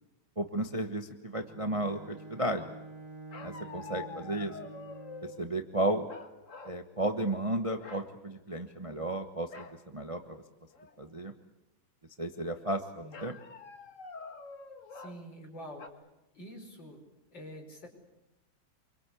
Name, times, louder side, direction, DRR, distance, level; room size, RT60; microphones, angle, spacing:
voice 1, 0.4-2.6 3.4-4.6 5.2-6.1 6.6-10.4 11.0-11.3 12.2-13.4, right 1 dB, 20° right, 6 dB, 1.0 m, -33 dB
Bowed string instrument, 1.4-5.5, right 3 dB, 40° right, 4.5 m, -48 dB
sound 1, 3.3-5.4 6.1-6.8 7.1-7.4 7.7-8.1 9.5-9.8 10.3-10.4 10.7-11.2 13.1-15.2 15.8-15.9, left 4 dB, 40° left, 1.9 m, -46 dB
voice 2, 13.0-13.3 14.9-15.8 16.3-17.0 17.3-17.9, equal, 60° left, 2 dB, 6.1 m, -46 dB
26.0 x 24.0 x 8.4 m, 0.95 s
omnidirectional pair, 2.2 m